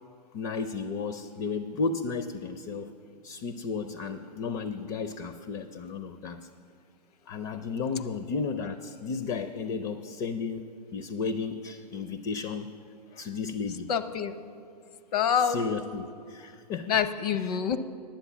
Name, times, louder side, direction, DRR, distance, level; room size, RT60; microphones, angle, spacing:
voice 1, 0.3-2.9 3.2-6.4 7.3-10.6 10.9-12.7 13.1-13.9 15.4-16.9, left 4 dB, 30° left, 10 dB, 0.4 m, -33 dB
voice 2, 13.9-14.4 15.1-15.7 16.9-17.8, left 8 dB, 65° left, 11 dB, 0.8 m, -26 dB
10.0 x 7.9 x 7.1 m, 2.5 s
hypercardioid pair, 135°, 21 cm